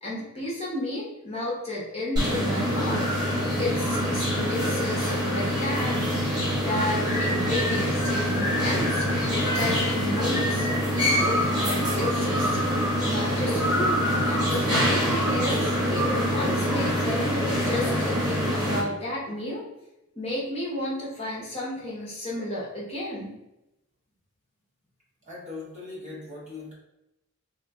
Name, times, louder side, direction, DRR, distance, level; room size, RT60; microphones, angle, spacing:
voice 1, 0.0-6.0 6.6-12.6 13.0-14.0 14.3-19.6 20.2-23.3, left 1 dB, 25° left, -6 dB, 0.8 m, -32 dB
sound 1, 2.2-18.8, equal, 20° right, 0.9 m, -25 dB
voice 2, 25.2-26.7, left 3 dB, 35° right, -6 dB, 1.0 m, -39 dB
2.9 x 2.3 x 3.5 m, 0.91 s
head